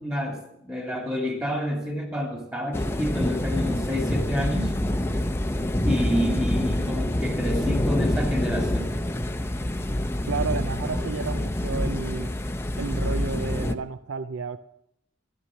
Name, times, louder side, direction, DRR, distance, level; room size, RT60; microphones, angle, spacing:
voice 1, 0.0-4.7 5.8-8.9, equal, 15° right, 1 dB, 2.2 m, -29 dB
sound 1, 2.7-13.7, left 1 dB, 10° left, 0.6 m, -26 dB
voice 2, 10.3-12.3 12.8-14.6, right 4 dB, 75° right, 12 dB, 0.5 m, -31 dB
13.0 x 11.0 x 6.3 m, 0.76 s
head